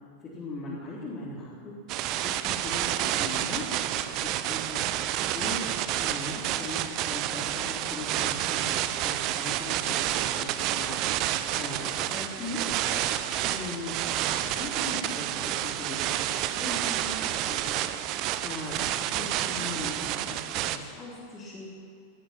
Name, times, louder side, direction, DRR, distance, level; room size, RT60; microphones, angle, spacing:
voice 1, 0.2-1.7 2.2-4.8 5.3-6.8 7.1-12.7 13.4-21.7, left 2 dB, 25° left, -8 dB, 3.9 m, -39 dB
sound 1, 1.9-20.8, right 12 dB, 40° right, 0.7 m, -29 dB
18.5 x 13.0 x 6.1 m, 2.5 s
figure-of-eight pair, 90°, 0 cm